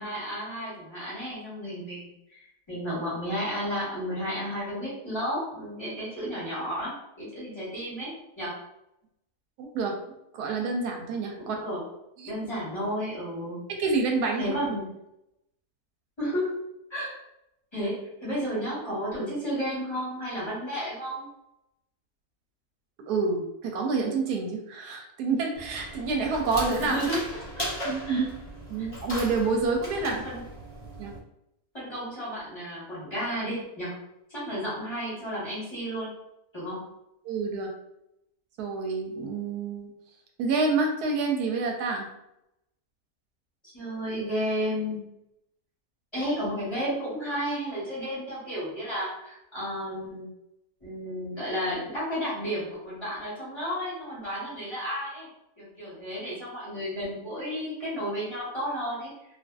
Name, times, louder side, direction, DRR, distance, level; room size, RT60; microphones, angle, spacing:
voice 1, 0.0-8.1 8.4-8.5 11.4-11.8 12.3-13.6 14.4-14.9 16.2-16.5 16.9-17.1 17.7-21.3 26.8-28.2 28.8-28.9 30.1-30.4 31.7-33.9 34.3-36.1 36.5-36.8 43.7-45.0 46.1-50.3 50.8-55.3 55.6-59.1, equal, 20° left, -10 dB, 1.1 m, -32 dB
voice 2, 9.6-9.9 10.4-11.6 12.2-12.3 13.8-14.6 23.1-27.0 27.8-28.3 28.7-30.2 31.0-31.1 37.2-37.7 38.6-39.9 40.4-42.1, right 4 dB, 85° right, 2 dB, 1.1 m, -28 dB
sound 1, 25.5-31.2, equal, 50° left, 0.4 m, -38 dB
2.6 x 2.5 x 2.3 m, 0.84 s
omnidirectional pair, 1.6 m